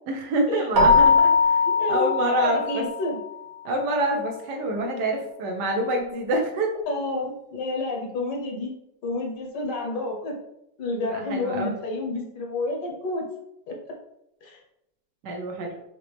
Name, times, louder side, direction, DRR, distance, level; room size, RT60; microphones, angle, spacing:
voice 1, 0.1-1.6 1.9-2.8 3.6-6.8 11.1-11.7 15.2-15.8, right 1 dB, 70° right, 2 dB, 1.2 m, -26 dB
Keyboard (musical), 0.8-3.2, left 4 dB, 45° right, 1.0 m, -20 dB
voice 2, 1.6-3.2 6.9-8.7 9.0-10.4 10.8-13.2 13.7-13.8 14.4-14.6, left 2 dB, 70° left, 1 dB, 1.5 m, -29 dB
5.2 x 2.8 x 3.3 m, 0.82 s
omnidirectional pair, 2.0 m